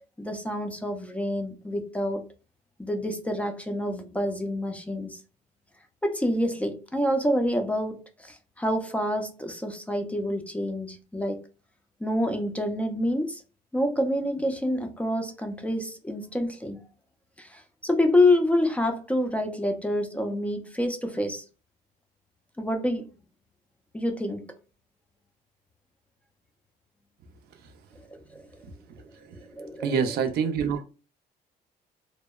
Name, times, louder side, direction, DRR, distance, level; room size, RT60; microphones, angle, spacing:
voice 1, 0.2-2.2 2.8-5.2 6.0-11.4 12.0-13.4 13.7-16.8 17.4-21.4 22.6-23.1 23.9-24.5 28.1-28.5 29.5-29.9, left 1 dB, 10° left, 0.4 m, -27 dB
voice 2, 29.0-29.5 29.8-30.8, right 6 dB, 70° right, 0.5 m, -27 dB
2.7 x 2.0 x 2.2 m
cardioid pair, 110°, 17 cm